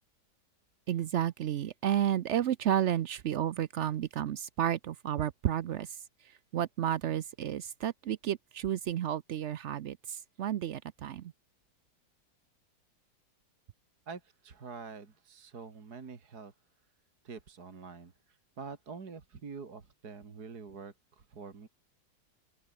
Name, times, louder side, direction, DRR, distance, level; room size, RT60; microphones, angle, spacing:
voice 1, 0.9-6.0 6.2-11.3, right 11 dB, 80° right, 0.6 m, -32 dB
voice 2, 14.1-16.5 17.2-21.7, right 5 dB, 60° right, 2.8 m, -46 dB
open air
omnidirectional pair, 2.0 m